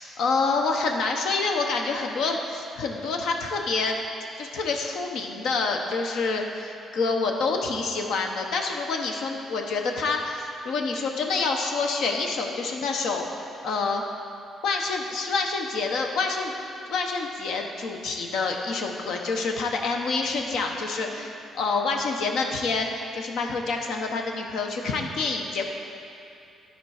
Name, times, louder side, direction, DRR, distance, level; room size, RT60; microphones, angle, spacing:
voice 1, 0.0-4.0 4.4-13.3 13.6-14.0 14.6-16.5 16.9-25.7, left 4 dB, 80° left, 2 dB, 0.9 m, -27 dB
12.0 x 4.6 x 4.8 m, 2.6 s
cardioid pair, 90°, 0 cm